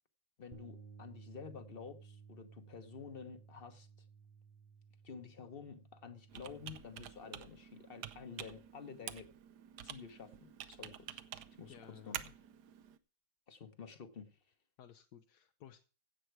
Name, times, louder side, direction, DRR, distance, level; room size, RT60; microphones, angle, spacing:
voice 1, 0.4-3.9 5.0-9.3 9.8-11.2 11.6-12.3 13.5-14.4, left 6 dB, 35° left, 1.1 m, -50 dB
Bass guitar, 0.5-6.8, right 5 dB, 20° right, 1.2 m, -57 dB
Computer keyboard, 6.3-13.0, right 10 dB, 65° right, 1.2 m, -49 dB
voice 2, 11.7-12.3 14.8-15.8, left 10 dB, 65° left, 1.2 m, -56 dB
16.0 x 7.8 x 4.7 m
omnidirectional pair, 2.1 m